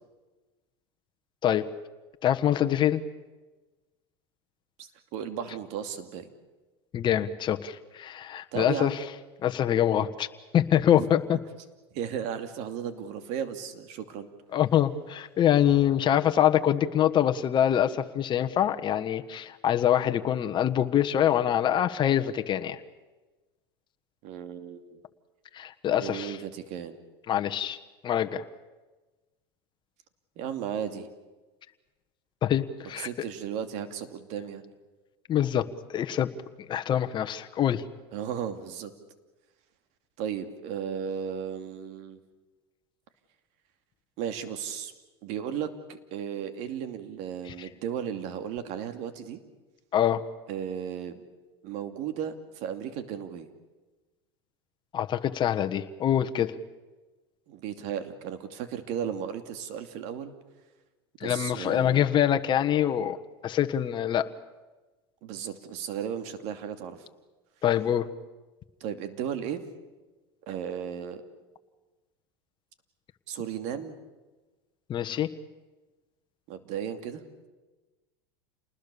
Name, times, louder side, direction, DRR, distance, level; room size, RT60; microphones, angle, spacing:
voice 1, 2.2-3.0 6.9-9.0 9.4-10.3 10.5-11.4 14.5-22.8 25.5-26.4 27.3-27.8 28.0-28.4 32.4-33.1 35.3-35.7 35.9-36.3 36.7-37.8 49.9-50.3 54.9-56.5 61.2-63.2 63.4-64.3 67.6-68.1 74.9-75.3, left 10 dB, 35° left, 8 dB, 1.4 m, -25 dB
voice 2, 4.8-6.3 8.5-9.0 11.0-11.1 11.9-14.3 24.2-25.0 26.0-27.0 30.4-31.1 33.0-34.6 38.1-38.9 40.2-42.2 44.2-44.9 45.2-49.4 50.5-51.2 51.6-53.5 57.5-60.3 61.2-62.1 65.2-67.1 68.8-69.6 70.5-71.2 73.3-74.0 76.5-77.2, right 8 dB, 60° right, 8 dB, 2.6 m, -35 dB
28.5 x 20.0 x 7.0 m, 1.2 s
hypercardioid pair, 100°, 13 cm